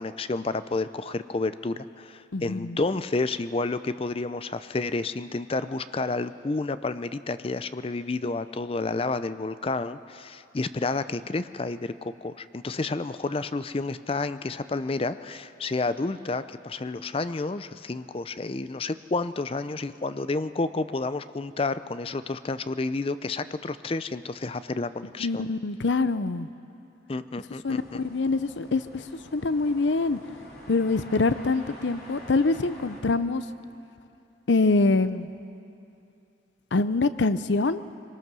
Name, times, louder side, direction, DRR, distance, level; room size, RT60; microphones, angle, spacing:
voice 1, 0.0-25.5 27.1-28.0, left 3 dB, 30° left, 13 dB, 0.5 m, -30 dB
voice 2, 2.3-2.8 25.2-26.5 27.6-29.0 29.3-30.2 30.7-33.4 34.5-35.3 36.7-37.8, left 3 dB, 75° left, 13 dB, 0.6 m, -24 dB
sound 1, 27.6-33.0, left 1 dB, 55° left, 3.1 m, -47 dB
23.5 x 19.0 x 6.2 m, 2.7 s
head